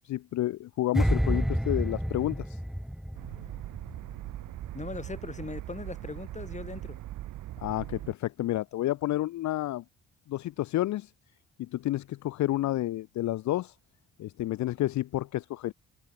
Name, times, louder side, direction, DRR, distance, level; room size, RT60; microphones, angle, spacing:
voice 1, 0.0-2.6 7.6-9.8 10.3-11.1 11.6-13.7 14.2-15.7, left 15 dB, 70° left, 0.7 m, -30 dB
sound 1, 0.9-4.1 4.4-4.7, equal, ahead, 3.6 m, -29 dB
sound 2, 3.1-8.1, right 15 dB, 80° right, 1.6 m, -40 dB
voice 2, 4.7-7.0, left 3 dB, 25° left, 5.8 m, -39 dB
cardioid pair, 90°, 30 cm